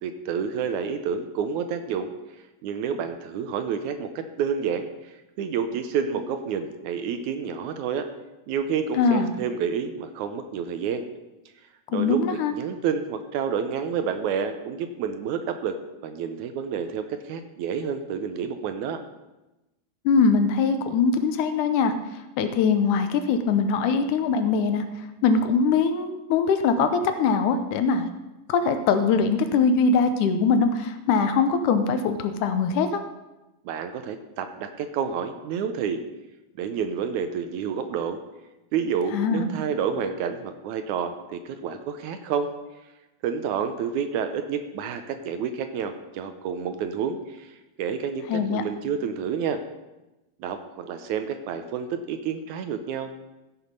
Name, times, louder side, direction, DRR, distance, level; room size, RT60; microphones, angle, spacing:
voice 1, 0.0-2.1 2.6-8.1 8.5-11.1 11.9-12.2 12.5-15.8 16.0-19.0 33.7-36.0 36.6-38.2 38.7-42.5 43.2-47.5 47.8-49.6 50.4-53.2, right 7 dB, 75° right, 8 dB, 1.9 m, -29 dB
voice 2, 8.9-9.3 11.9-12.5 20.1-28.1 28.5-33.0 39.1-39.5 48.3-48.6, left 5 dB, 75° left, 8 dB, 2.1 m, -22 dB
15.0 x 6.4 x 5.3 m, 1.0 s
omnidirectional pair, 3.9 m